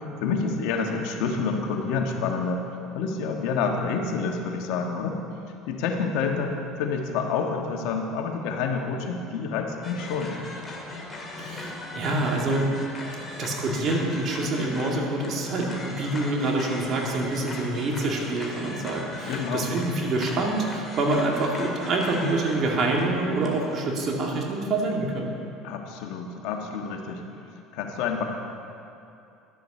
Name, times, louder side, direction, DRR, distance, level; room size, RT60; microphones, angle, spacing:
voice 1, 0.2-2.7 2.9-5.2 5.7-10.4 19.3-19.7 25.6-27.2 27.7-28.2, left 5 dB, 75° left, 2 dB, 1.4 m, -28 dB
sound 1, 9.8-23.8, left 2 dB, 20° left, 2.3 m, -38 dB
voice 2, 11.4-12.7 13.4-25.3, right 2 dB, 45° right, 0 dB, 2.2 m, -26 dB
11.5 x 7.8 x 6.6 m, 2.7 s
supercardioid pair, 105°, 0 cm